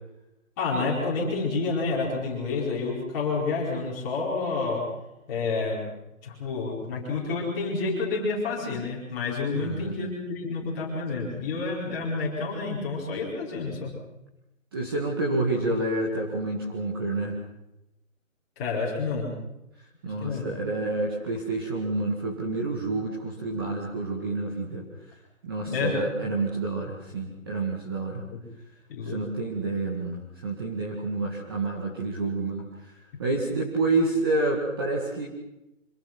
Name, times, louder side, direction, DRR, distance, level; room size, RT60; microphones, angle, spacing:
voice 1, 0.6-4.8 5.3-5.8 6.2-13.9 18.6-19.3 20.0-20.5 25.7-25.9 28.3-28.4 28.9-29.2, left 4 dB, 15° left, -4 dB, 4.7 m, -29 dB
voice 2, 9.5-9.9 14.7-17.4 20.0-24.8 25.4-28.2 29.0-32.7 33.2-35.3, right 2 dB, 15° right, -1 dB, 2.0 m, -28 dB
26.0 x 22.5 x 6.1 m, 0.90 s
hypercardioid pair, 175°, 40 cm